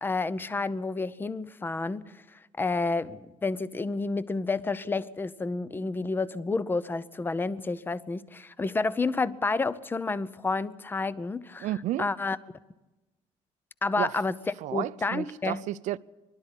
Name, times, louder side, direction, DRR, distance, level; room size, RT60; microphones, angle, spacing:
voice 1, 0.0-2.0 2.6-11.7 12.0-12.4 13.8-14.3 14.7-15.6, left 3 dB, 15° left, 0.7 m, -30 dB
voice 2, 11.6-12.1 14.0-14.2 14.6-16.0, right 14 dB, 70° right, 0.6 m, -32 dB
24.0 x 12.0 x 9.9 m
cardioid pair, 135°, 13 cm